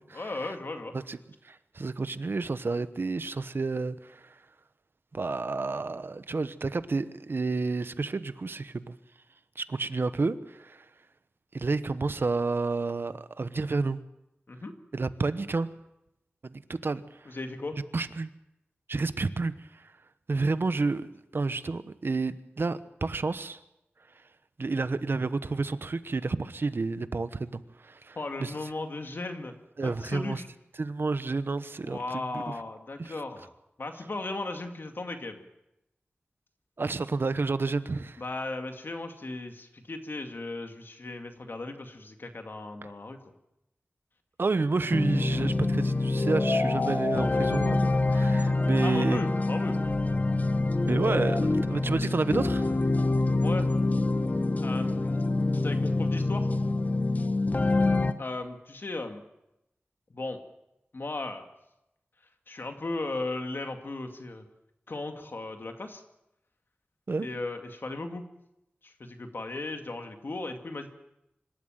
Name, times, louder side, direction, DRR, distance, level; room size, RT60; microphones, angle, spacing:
voice 1, 0.1-0.9 14.5-14.7 17.3-17.8 28.2-29.5 29.8-30.5 31.8-33.5 33.8-35.4 38.2-43.2 48.8-49.8 53.4-53.7 54.6-55.3 55.6-56.5 58.2-59.2 60.1-60.4 60.9-61.5 62.5-64.4 64.9-66.0 67.2-68.2 68.8-70.9, left 2 dB, 60° left, 5 dB, 2.2 m, -36 dB
voice 2, 1.4-4.3 5.1-8.9 9.6-10.8 11.5-14.0 14.9-15.7 16.4-17.0 17.3-17.4 17.9-18.3 18.9-19.8 20.3-23.6 24.6-28.5 29.8-30.4 30.8-32.4 33.0-33.1 36.8-38.2 44.4-49.2 50.8-52.7 67.1-67.3, right 3 dB, 65° right, 13 dB, 1.0 m, -30 dB
sound 1, 44.9-58.1, left 2 dB, 40° left, 1.1 m, -26 dB
25.5 x 13.0 x 9.1 m, 0.88 s
wide cardioid pair, 85°, 4 cm